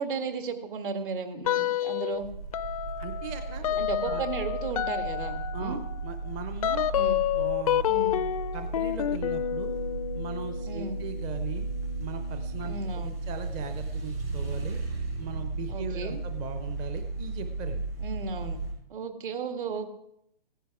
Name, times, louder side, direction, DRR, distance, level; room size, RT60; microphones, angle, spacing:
voice 1, 0.0-2.3 3.8-5.8 6.9-7.2 7.9-8.2 10.6-11.0 12.6-13.2 15.7-16.2 18.0-18.6 18.9-19.9, right 4 dB, 60° right, 7 dB, 1.8 m, -34 dB
sound 1, 1.4-2.2 2.5-12.9, left 11 dB, 40° left, 0.4 m, -30 dB
sound 2, 2.1-18.7, right 3 dB, 85° right, 6.3 m, -35 dB
voice 2, 3.0-4.2 5.5-6.9 7.3-7.8 8.5-9.7 10.1-11.7 12.0-14.8 15.2-17.8, right 5 dB, 15° right, 7 dB, 0.5 m, -39 dB
15.0 x 10.0 x 4.7 m, 0.76 s
hypercardioid pair, 140°, 29 cm